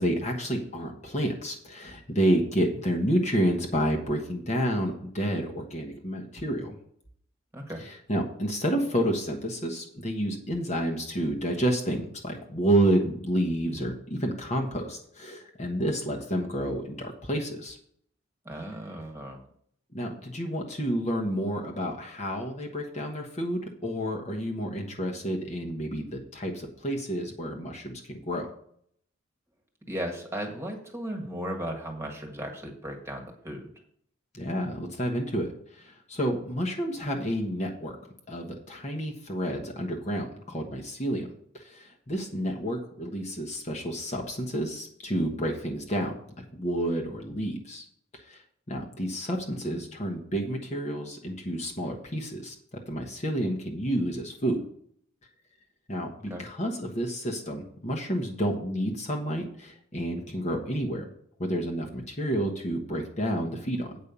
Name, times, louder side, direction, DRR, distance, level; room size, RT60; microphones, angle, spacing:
voice 1, 0.0-6.7 7.8-17.8 19.9-28.5 34.3-37.9 38.3-47.8 48.2-48.4 48.7-52.5 52.9-54.6 55.9-61.1 61.4-64.0, equal, 35° left, 1 dB, 1.2 m, -30 dB
voice 2, 7.5-7.8 18.4-19.4 29.9-33.7 49.5-49.9 56.3-56.4, equal, 15° right, 2 dB, 1.6 m, -36 dB
8.7 x 5.5 x 6.8 m, 0.65 s
head